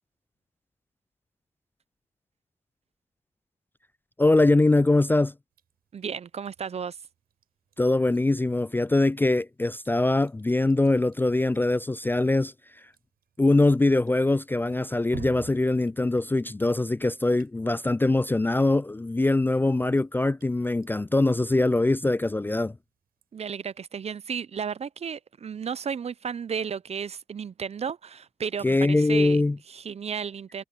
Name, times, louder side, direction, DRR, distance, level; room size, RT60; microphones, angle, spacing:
voice 1, 4.2-5.3 7.8-12.5 13.4-22.7 28.6-29.6, left 2 dB, 15° left, 0.3 m, -22 dB
Drip, 5.5-23.8, right 9 dB, 85° right, 8.0 m, -53 dB
voice 2, 5.9-7.0 23.3-29.4 29.7-30.6, right 6 dB, 45° right, 0.5 m, -33 dB
cardioid pair, 75°, 15 cm